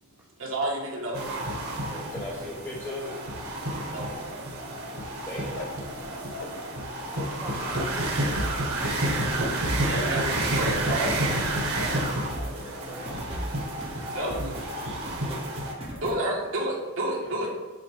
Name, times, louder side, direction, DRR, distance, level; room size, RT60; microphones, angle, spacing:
voice 1, 0.4-1.2 3.9-4.2 7.8-8.2 9.8-11.1 14.1-14.5 16.0-17.5, right 1 dB, 60° right, -2 dB, 1.5 m, -30 dB
sound 1, 1.1-15.7, right 1 dB, 85° right, 1.3 m, -30 dB
voice 2, 1.9-3.2 5.2-5.5 16.3-16.4 17.2-17.5, left 1 dB, 15° left, -5 dB, 0.9 m, -37 dB
sound 2, 5.5-7.4 7.7-14.5 14.8-15.3 15.6-16.1, left 2 dB, 55° left, 0.7 m, -43 dB
voice 3, 7.4-8.3 11.9-13.3, right 2 dB, 10° right, -2 dB, 0.6 m, -43 dB
sound 3, 8.3-16.3, right 1 dB, 25° right, 1.0 m, -38 dB
7.4 x 3.7 x 3.4 m, 1.4 s
head